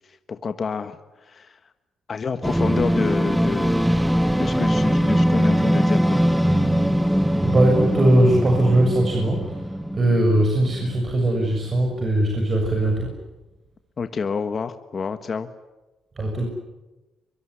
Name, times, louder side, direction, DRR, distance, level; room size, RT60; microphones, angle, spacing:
voice 1, 0.0-1.7 2.1-3.9 4.4-6.2 14.0-15.5, left 5 dB, 40° left, 9 dB, 1.4 m, -29 dB
sound 1, 2.4-11.0, equal, 5° right, 1.5 m, -21 dB
voice 2, 7.4-13.1 16.2-16.5, right 1 dB, 35° right, 1 dB, 6.9 m, -20 dB
24.5 x 23.5 x 10.0 m, 1.1 s
cardioid pair, 90°, 0 cm